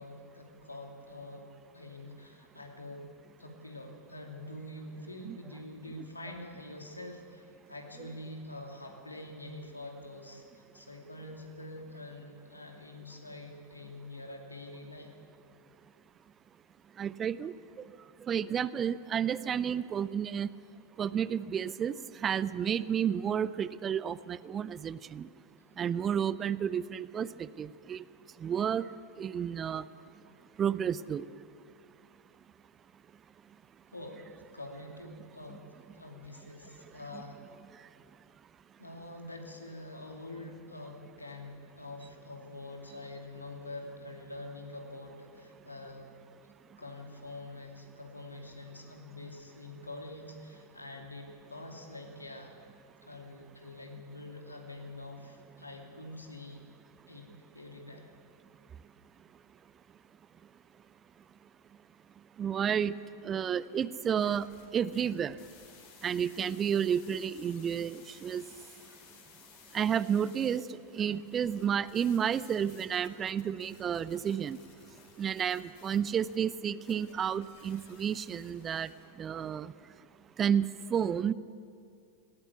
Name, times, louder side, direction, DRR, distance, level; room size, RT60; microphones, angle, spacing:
voice 1, 0.0-3.1 3.4-15.1 33.9-35.6 35.9-37.4 38.8-46.1 46.4-52.6 53.0-56.6 57.1-57.3 57.5-58.1, left 2 dB, 80° left, 2 dB, 2.7 m, -46 dB
voice 2, 17.0-17.5 18.3-20.5 21.0-22.0 22.2-25.3 25.8-28.0 28.4-28.9 29.2-29.8 30.6-31.3 37.1-37.2 62.4-62.9 63.2-64.5 64.7-65.4 66.0-68.4 69.7-70.6 70.9-74.6 75.2-78.9 79.2-79.7 80.4-81.3, right 8 dB, 25° right, 18 dB, 0.5 m, -31 dB
sound 1, 64.2-79.0, left 6 dB, 50° left, 4.8 m, -58 dB
19.5 x 18.0 x 8.4 m, 2.4 s
figure-of-eight pair, 90°, 0 cm